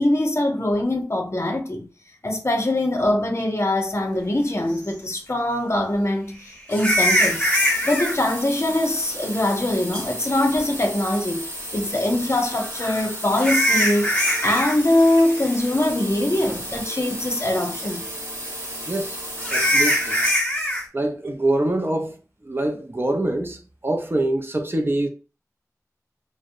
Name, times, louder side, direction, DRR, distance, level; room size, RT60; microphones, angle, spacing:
voice 1, 0.0-1.9 2.2-6.4 6.7-7.5 7.8-11.4 11.7-14.1 14.4-18.1, left 1 dB, 45° left, 0.6 m, -22 dB
sound 1, 4.8-4.9 6.7-8.1 9.9-10.0 12.6-14.8 15.0-15.4 15.8-15.9 16.5-16.6 19.4-20.8, equal, 15° left, 0.8 m, -22 dB
sound 2, 7.2-20.3, right 1 dB, 55° right, 1.1 m, -34 dB
voice 2, 18.9-19.2 19.5-20.2 20.9-25.1, right 1 dB, 40° right, 0.4 m, -25 dB
2.7 x 2.0 x 2.5 m
wide cardioid pair, 45°, 6 cm